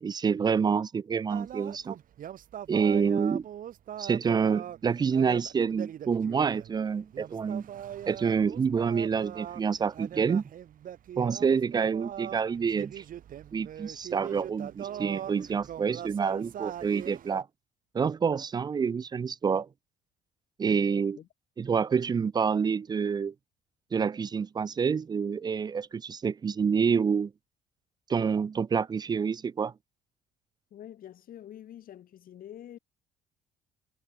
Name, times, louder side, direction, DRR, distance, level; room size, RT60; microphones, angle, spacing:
voice 1, 0.0-2.0 2.7-3.4 4.0-7.7 8.1-10.4 11.2-13.0 13.5-17.5 17.9-19.7 20.6-21.2 21.6-23.3 23.9-27.3 28.1-29.7, right 6 dB, 25° right, 0.4 m, -27 dB
sound 1, 1.3-17.4, right 10 dB, 55° right, 1.8 m, -41 dB
voice 2, 30.7-32.8, left 11 dB, 55° left, 3.7 m, -46 dB
cardioid pair, 110°, 17 cm